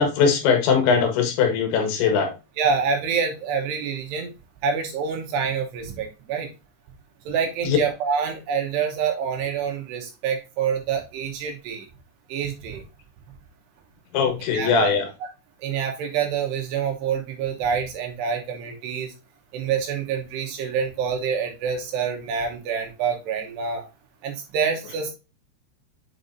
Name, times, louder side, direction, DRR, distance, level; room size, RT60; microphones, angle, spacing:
voice 1, 0.0-2.3 7.6-7.8 14.1-15.1, left 6 dB, 75° left, 4 dB, 3.6 m, -20 dB
voice 2, 2.6-4.3 4.6-6.5 7.3-11.9 12.3-12.8 14.5-14.9 15.2-15.3 15.6-19.1 19.5-23.8 24.2-25.1, right 6 dB, 75° right, 3 dB, 2.8 m, -26 dB
7.9 x 4.6 x 2.6 m, 0.29 s
omnidirectional pair, 5.5 m